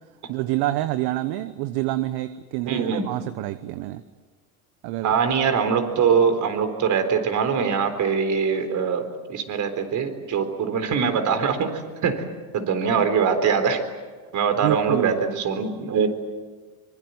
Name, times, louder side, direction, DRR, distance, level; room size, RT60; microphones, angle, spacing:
voice 1, 0.3-4.0 4.8-5.1 14.6-15.2, right 16 dB, 55° right, 12 dB, 1.2 m, -27 dB
voice 2, 2.7-3.2 5.0-12.2 12.5-13.8 14.3-16.1, right 6 dB, 40° right, 8 dB, 4.0 m, -23 dB
24.5 x 22.0 x 9.5 m, 1.4 s
supercardioid pair, 115°, 44 cm